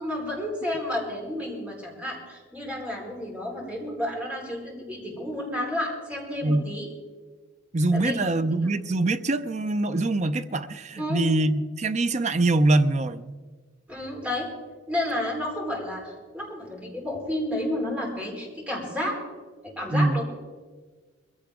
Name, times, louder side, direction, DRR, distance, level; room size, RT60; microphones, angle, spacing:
voice 1, 0.0-6.9 7.9-8.3 11.0-11.2 13.9-14.5 14.9-19.1 19.6-20.2, left 1 dB, 10° right, -3 dB, 4.5 m, -31 dB
voice 2, 7.7-13.3 19.9-20.2, right 2 dB, 40° right, 11 dB, 0.7 m, -24 dB
21.5 x 16.0 x 3.7 m, 1.4 s
head